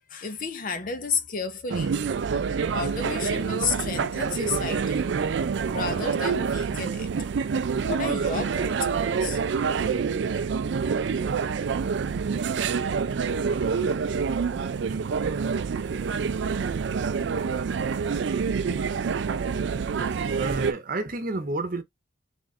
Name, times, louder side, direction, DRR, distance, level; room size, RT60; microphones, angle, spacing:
voice 1, 0.1-2.0 2.7-5.0 5.7-7.1 7.9-9.4, left 5 dB, 45° left, 0.7 m, -32 dB
sound 1, 1.7-20.7, right 5 dB, 65° right, 0.4 m, -27 dB
voice 2, 20.0-21.8, right 2 dB, 45° right, 0.9 m, -31 dB
3.4 x 2.5 x 4.1 m
head